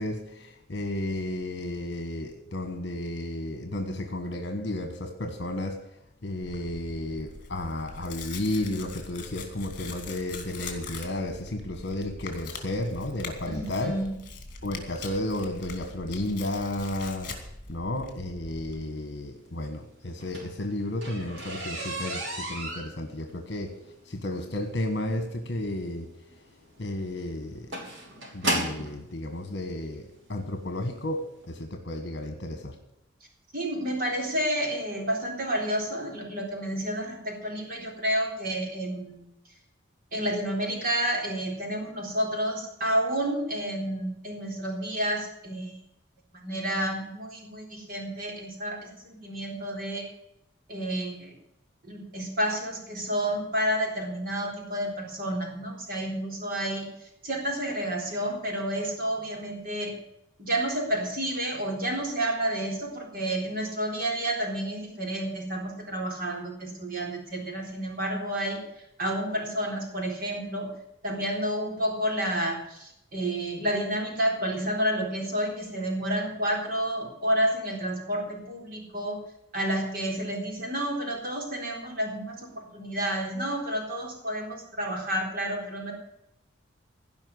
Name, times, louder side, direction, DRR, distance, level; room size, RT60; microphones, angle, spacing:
voice 1, 0.0-5.8 6.2-14.0 14.6-17.4 17.7-23.8 24.0-26.1 26.8-27.7 28.3-32.8, left 1 dB, 60° left, 6 dB, 1.4 m, -33 dB
Tearing, 6.4-18.8, left 3 dB, 45° left, 2.6 m, -42 dB
voice 2, 13.5-14.1 33.5-39.2 40.1-45.8 46.4-50.1 50.7-51.3 51.9-59.9 60.4-68.6 69.0-70.7 71.0-79.2 79.5-85.9, right 1 dB, 45° right, 0 dB, 3.8 m, -30 dB
sound 1, 20.1-29.0 29.9-30.0 30.5-30.7 31.0-31.1 31.4-31.5, right 1 dB, 80° right, 3.9 m, -34 dB
16.5 x 5.7 x 9.7 m, 0.82 s
head